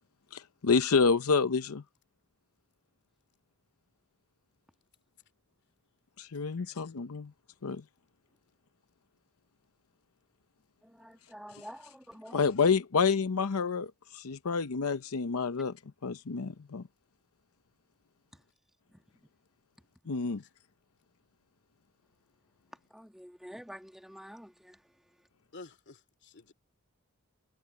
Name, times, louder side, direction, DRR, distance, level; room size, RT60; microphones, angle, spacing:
voice 1, 0.3-1.8 6.2-7.3 7.6-7.8 12.3-15.8 16.0-16.8 20.1-20.4, left 5 dB, 80° left, 0.7 m, -28 dB
voice 2, 6.6-6.9 25.5-26.5, left 3 dB, 50° left, 2.7 m, -51 dB
voice 3, 10.8-12.5 18.3-18.4 18.9-19.0 22.9-24.8, equal, ahead, 1.4 m, -48 dB
head